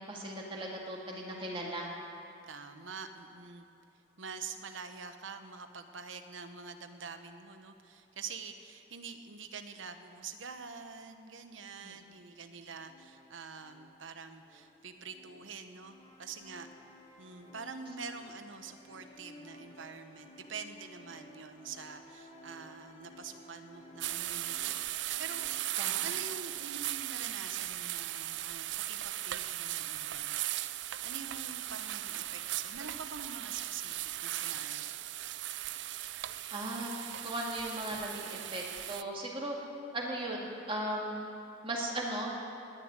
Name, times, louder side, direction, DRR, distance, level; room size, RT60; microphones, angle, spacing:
voice 1, 0.0-1.9 11.8-11.9 25.8-26.1 36.5-36.9 37.2-39.5 39.9-41.3 41.6-42.3, right 1 dB, 25° right, -2 dB, 2.1 m, -37 dB
voice 2, 2.4-3.7 4.2-16.7 17.2-25.7 26.0-30.4 31.0-35.0, right 5 dB, 80° right, 8 dB, 1.0 m, -46 dB
sound 1, 12.7-26.7, left 1 dB, 35° left, 2.7 m, -56 dB
sound 2, 24.0-39.0, right 14 dB, 65° right, 0.4 m, -37 dB
19.5 x 7.4 x 9.6 m, 2.7 s
head